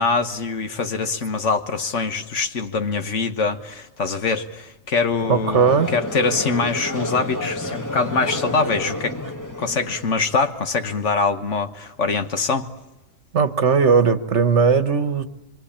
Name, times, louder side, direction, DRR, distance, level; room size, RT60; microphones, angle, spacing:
voice 1, 0.0-5.7 5.9-9.2 9.6-12.7, left 4 dB, 60° left, 1.6 m, -23 dB
Conversation / Crowd, 5.1-10.4, left 1 dB, 15° left, 1.7 m, -30 dB
voice 2, 5.3-5.9 13.3-15.2, right 5 dB, 55° right, 1.4 m, -18 dB
25.5 x 25.0 x 8.7 m
omnidirectional pair, 1.4 m